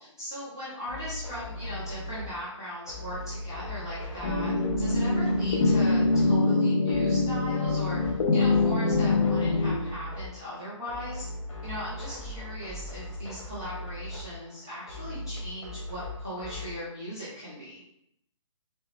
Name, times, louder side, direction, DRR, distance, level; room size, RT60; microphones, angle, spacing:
voice 1, 0.0-11.3 11.6-17.8, equal, 5° left, -13 dB, 0.3 m, -38 dB
sound 1, 0.9-16.8, left 1 dB, 85° left, 1.5 m, -39 dB
sound 2, 4.2-9.8, left 3 dB, 60° left, 0.6 m, -24 dB
3.8 x 2.2 x 3.6 m, 0.76 s
hypercardioid pair, 180°, 17 cm